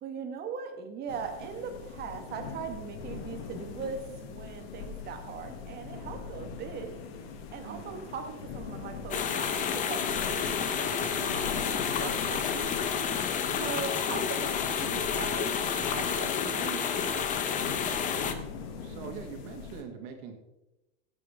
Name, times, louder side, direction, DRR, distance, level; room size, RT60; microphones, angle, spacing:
voice 1, 0.0-4.0 4.3-6.9 7.5-12.7 13.4-17.4, right 6 dB, 30° right, 5 dB, 1.7 m, -40 dB
sound 1, 1.1-19.8, left 5 dB, 65° left, 2.3 m, -42 dB
voice 2, 7.6-8.1 13.5-13.8 18.8-20.3, right 6 dB, 55° right, 3 dB, 2.7 m, -43 dB
sound 2, 9.1-18.3, left 7 dB, 25° left, 1.0 m, -30 dB
17.0 x 8.4 x 3.6 m, 0.97 s
supercardioid pair, 145°, 33 cm